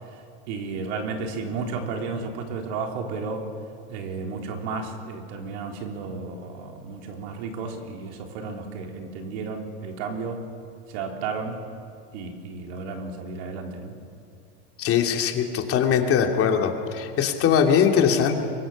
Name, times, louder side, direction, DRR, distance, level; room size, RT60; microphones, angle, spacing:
voice 1, 0.0-3.5 3.9-10.5 10.9-11.6 12.1-14.0, right 4 dB, 70° right, 3 dB, 3.8 m, -33 dB
voice 2, 14.8-18.4, left 7 dB, 40° left, 3 dB, 2.8 m, -21 dB
24.5 x 22.5 x 7.3 m, 2.5 s
supercardioid pair, 125°, 34 cm